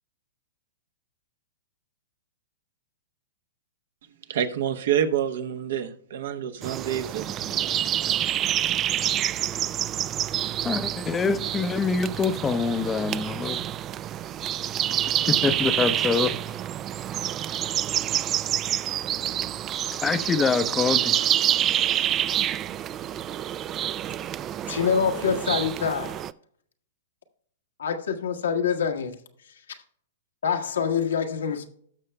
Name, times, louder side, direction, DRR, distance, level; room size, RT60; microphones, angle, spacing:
voice 1, 4.3-8.5, right 9 dB, 65° right, 1.0 m, -28 dB
sound 1, 6.6-26.3, right 11 dB, 30° right, 0.3 m, -27 dB
voice 2, 10.6-13.6 15.3-16.3 20.0-21.2, left 5 dB, 15° left, 0.7 m, -25 dB
voice 3, 24.7-26.2 27.8-29.1 30.4-31.7, left 7 dB, 75° left, 1.3 m, -25 dB
18.5 x 6.5 x 2.2 m
hypercardioid pair, 115°, 0 cm